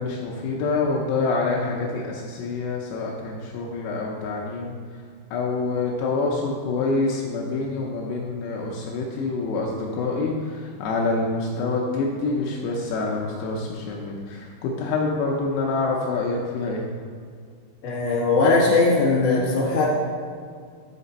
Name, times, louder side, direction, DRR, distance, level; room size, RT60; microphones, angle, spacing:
voice 1, 0.0-4.7 5.3-16.9, left 3 dB, 85° left, -2 dB, 2.4 m, -26 dB
voice 2, 17.8-19.9, left 3 dB, 55° left, -5 dB, 2.6 m, -19 dB
6.7 x 5.9 x 4.1 m, 2.1 s
omnidirectional pair, 5.7 m